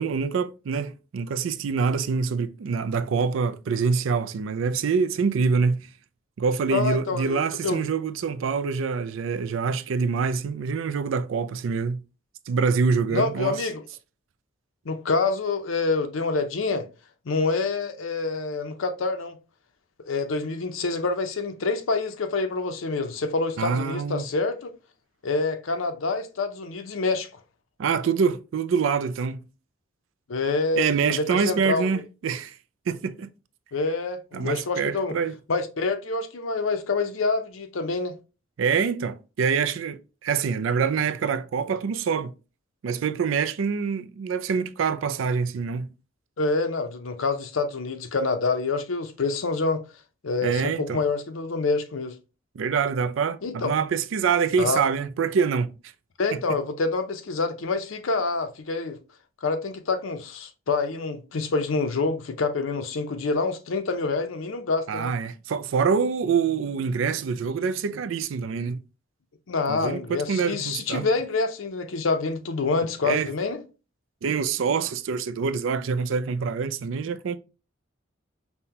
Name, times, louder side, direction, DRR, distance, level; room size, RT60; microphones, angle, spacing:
voice 1, 0.0-5.9 6.4-12.0 12.5-13.6 23.6-24.3 27.8-29.4 30.8-32.6 32.9-33.3 34.3-35.3 38.6-42.3 42.8-45.9 50.4-51.0 52.6-55.7 64.9-68.8 69.7-71.1 73.0-73.3 74.2-77.4, right 5 dB, 75° right, 0.4 m, -25 dB
voice 2, 6.7-7.8 13.1-13.8 14.9-16.9 17.3-19.4 20.0-24.7 25.2-27.3 30.3-32.0 33.7-35.2 35.5-38.1 46.4-49.8 50.2-52.1 53.4-53.7 54.6-54.8 56.2-59.0 59.4-65.1 69.5-73.6, left 3 dB, 80° left, 0.6 m, -27 dB
5.5 x 2.2 x 2.8 m
head